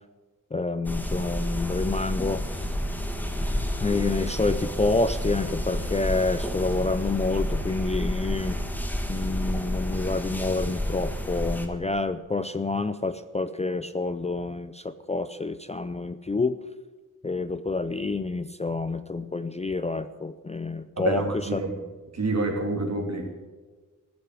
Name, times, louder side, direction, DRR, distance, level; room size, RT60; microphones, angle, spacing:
voice 1, 0.5-2.7 3.8-8.6 9.1-16.6 17.2-21.6, left 3 dB, 20° left, 12 dB, 0.4 m, -28 dB
sound 1, 0.9-11.7, equal, 5° left, 1.5 m, -30 dB
voice 2, 21.0-21.7 22.1-23.2, right 2 dB, 50° right, 1 dB, 2.8 m, -27 dB
15.0 x 7.9 x 9.4 m, 1.3 s
wide cardioid pair, 135°, 33 cm